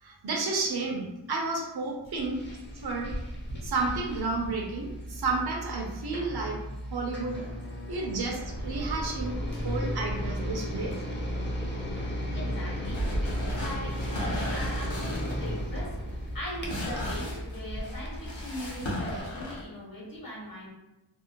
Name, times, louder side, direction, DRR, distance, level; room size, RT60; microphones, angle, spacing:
voice 1, 0.0-2.4 2.7-3.1 3.6-6.6 6.9-7.4 7.9-9.4 9.6-10.9, right 3 dB, 60° right, 0 dB, 0.6 m, -31 dB
sound 1, 2.2-19.2, equal, 25° left, 0.6 m, -35 dB
voice 2, 12.3-20.7, left 1 dB, 50° left, -4 dB, 1.1 m, -40 dB
sound 2, 12.8-19.6, equal, 80° left, 0.9 m, -35 dB
2.6 x 2.0 x 2.8 m, 0.94 s
wide cardioid pair, 45°, 45 cm